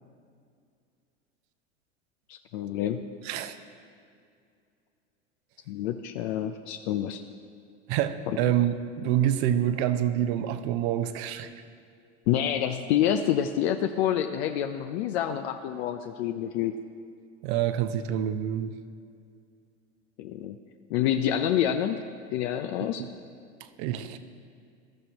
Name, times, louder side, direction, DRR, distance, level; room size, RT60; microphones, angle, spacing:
voice 1, 2.3-3.1 5.7-7.2 12.3-16.7 20.2-20.6 20.9-22.0 22.3-23.0, left 10 dB, 65° left, 6 dB, 0.6 m, -27 dB
voice 2, 3.2-3.6 7.9-11.5 17.4-18.8 23.0-23.1 23.8-24.2, right 11 dB, 65° right, 10 dB, 0.9 m, -27 dB
16.0 x 12.5 x 2.9 m, 2.3 s
hypercardioid pair, 95°, 35 cm